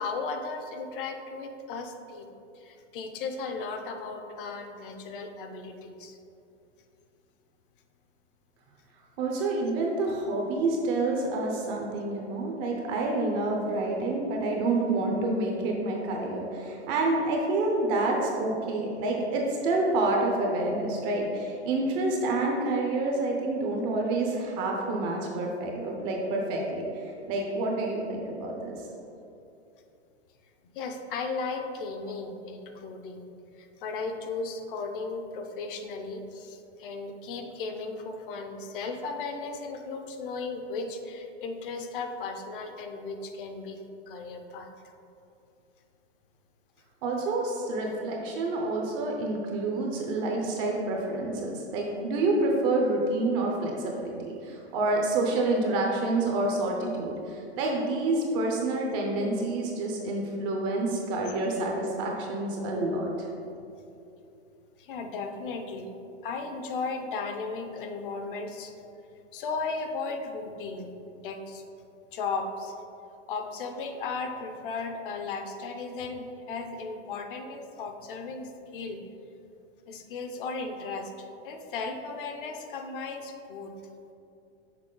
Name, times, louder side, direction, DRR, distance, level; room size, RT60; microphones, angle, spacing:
voice 1, 0.0-2.3 2.5-6.2 30.7-33.3 33.5-43.8 44.1-44.7 64.8-65.9 66.2-68.7 69.3-70.9 71.2-71.6 72.1-72.7 73.3-79.0 79.9-81.1 81.4-83.7, left 4 dB, 50° left, 5 dB, 0.7 m, -36 dB
voice 2, 9.2-28.8 47.0-63.3, right 2 dB, 20° right, 0 dB, 0.4 m, -28 dB
6.6 x 4.4 x 3.7 m, 2.7 s
hypercardioid pair, 150°, 34 cm